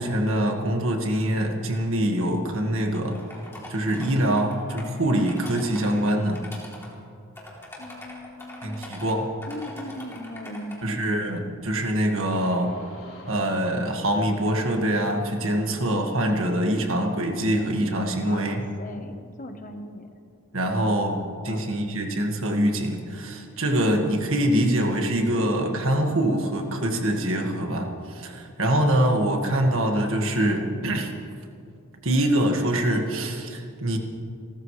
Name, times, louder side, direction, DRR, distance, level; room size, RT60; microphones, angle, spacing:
voice 1, 0.0-3.2 3.7-6.4 8.6-9.3 10.8-12.7 13.2-18.6 20.5-21.2 21.4-31.1 32.0-34.0, right 1 dB, 65° right, 2 dB, 1.8 m, -24 dB
sound 1, 2.9-4.8 5.2-6.9 7.4-9.1 9.4-10.8, left 1 dB, 10° left, 3.1 m, -42 dB
voice 2, 7.8-8.9 9.5-11.0 18.1-20.2 20.7-20.9 21.2-21.8, left 1 dB, 35° left, 6 dB, 1.1 m, -39 dB
sound 2, 12.3-18.0, left 1 dB, 65° left, 4.8 m, -48 dB
30.0 x 13.5 x 3.3 m, 2.4 s
head